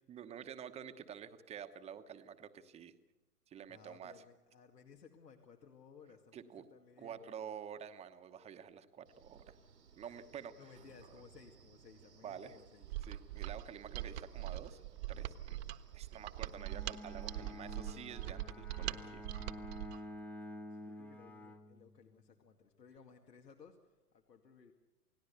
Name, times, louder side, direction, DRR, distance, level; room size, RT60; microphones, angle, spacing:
voice 1, 0.1-2.9 3.5-4.2 6.3-6.7 7.0-9.6 10.0-10.7 12.2-12.6 13.0-14.8 15.1-15.6 15.9-19.2, right 8 dB, 15° right, 9 dB, 1.1 m, -49 dB
voice 2, 3.7-7.3 10.0-12.9 20.2-24.7, left 6 dB, 85° left, 2 dB, 2.3 m, -60 dB
Wind, 9.1-18.3, right 6 dB, 80° right, 2.4 m, -63 dB
Mechanisms, 12.8-20.0, right 15 dB, 40° right, 1.4 m, -42 dB
Bowed string instrument, 16.5-22.3, left 1 dB, 5° left, 0.8 m, -50 dB
29.0 x 18.0 x 6.9 m, 1.0 s
hypercardioid pair, 125°, 47 cm